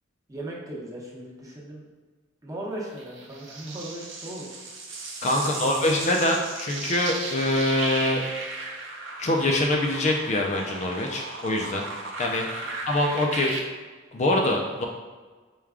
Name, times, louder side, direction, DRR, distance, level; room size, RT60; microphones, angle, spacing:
voice 1, 0.3-1.8 2.4-4.6 5.5-5.7, right 1 dB, 20° right, -5 dB, 0.8 m, -37 dB
sound 1, 3.0-13.6, right 3 dB, 70° right, 0.6 m, -36 dB
voice 2, 5.2-8.3 9.2-11.8 12.2-13.6 14.1-14.9, left 1 dB, 35° left, 1 dB, 0.4 m, -24 dB
4.6 x 2.2 x 3.5 m, 1.4 s
head